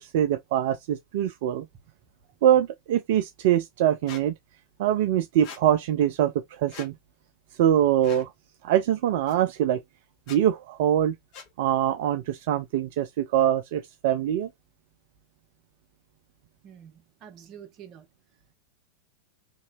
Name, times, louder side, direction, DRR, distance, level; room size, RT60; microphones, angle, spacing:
voice 1, 0.0-1.7 2.4-4.3 4.8-6.9 7.6-8.3 8.6-9.8 10.3-11.2 11.6-14.5, right 10 dB, 50° right, 0.4 m, -23 dB
Squeak, 4.1-4.2 5.4-5.6 6.7-6.9 8.0-8.3 9.3-9.4 10.2-10.4 11.3-11.5, left 6 dB, 40° left, 0.8 m, -43 dB
voice 2, 16.6-18.1, right 9 dB, 35° right, 1.0 m, -47 dB
3.0 x 2.7 x 2.6 m
figure-of-eight pair, 90°, 0 cm